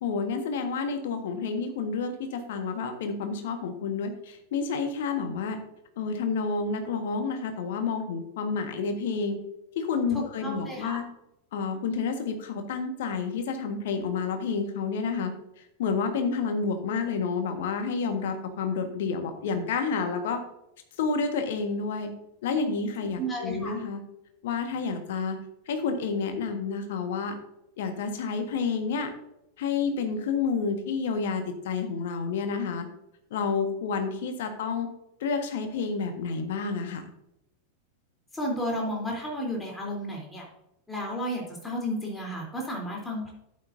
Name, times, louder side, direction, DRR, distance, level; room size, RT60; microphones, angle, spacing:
voice 1, 0.0-5.6 6.0-9.4 9.7-11.0 11.5-15.3 15.6-20.4 21.0-22.1 22.4-24.0 24.4-25.4 25.7-27.3 27.8-29.1 29.6-32.9 33.3-34.9 35.2-37.0, left 5 dB, 55° left, 6 dB, 1.5 m, -29 dB
voice 2, 10.1-11.0 23.2-23.7 38.3-40.5 40.9-43.3, equal, 10° left, -1 dB, 3.4 m, -32 dB
12.0 x 8.7 x 2.7 m, 0.82 s
figure-of-eight pair, 90°, 0 cm